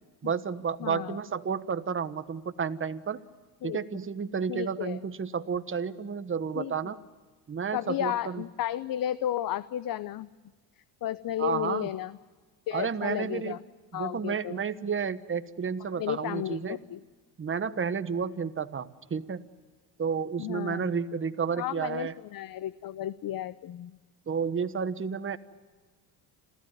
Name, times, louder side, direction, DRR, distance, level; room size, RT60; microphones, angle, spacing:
voice 1, 0.2-3.2 3.6-7.0 7.5-8.4 11.4-11.9 12.7-13.6 13.9-16.8 17.4-19.5 20.0-22.1 24.3-25.4, right 6 dB, 30° right, 12 dB, 1.2 m, -31 dB
voice 2, 0.8-1.2 3.6-3.8 4.5-5.0 6.5-6.7 7.7-10.3 11.0-12.2 12.7-13.6 13.9-14.6 16.0-17.0 20.4-20.9 21.5-23.9, left 12 dB, 50° left, 16 dB, 0.7 m, -33 dB
27.5 x 15.5 x 9.4 m, 1.4 s
cardioid pair, 100°, 45 cm